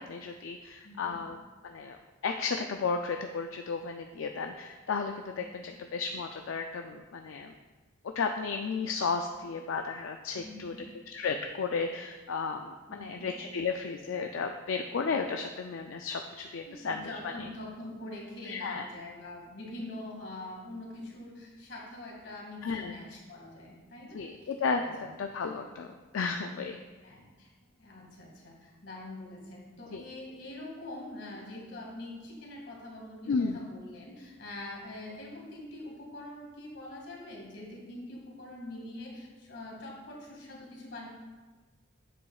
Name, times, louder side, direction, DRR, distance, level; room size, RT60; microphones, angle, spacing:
voice 1, 0.0-7.5 8.0-10.7 11.1-17.5 18.4-18.9 22.6-22.9 24.1-25.9 26.1-26.8 29.9-30.0 33.3-33.6, left 5 dB, 80° left, 4 dB, 0.4 m, -34 dB
voice 2, 0.8-1.2 10.3-10.8 12.9-13.3 16.7-24.3 24.8-25.1 25.4-25.5 27.0-27.5 27.8-41.1, left 1 dB, 60° left, -2 dB, 2.0 m, -44 dB
9.4 x 7.7 x 2.3 m, 1.3 s
head